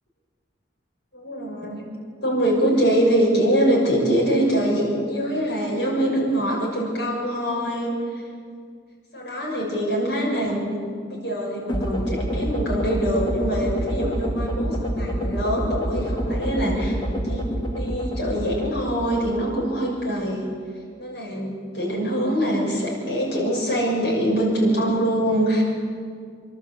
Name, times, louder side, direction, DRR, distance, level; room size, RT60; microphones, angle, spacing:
voice 1, 1.1-1.9 2.2-8.2 9.1-10.8 11.1-20.5 21.0-25.6, right 1 dB, 70° left, -4 dB, 6.5 m, -24 dB
sound 1, 11.7-19.9, equal, 25° left, 1.5 m, -27 dB
28.0 x 12.5 x 8.0 m, 2.1 s
head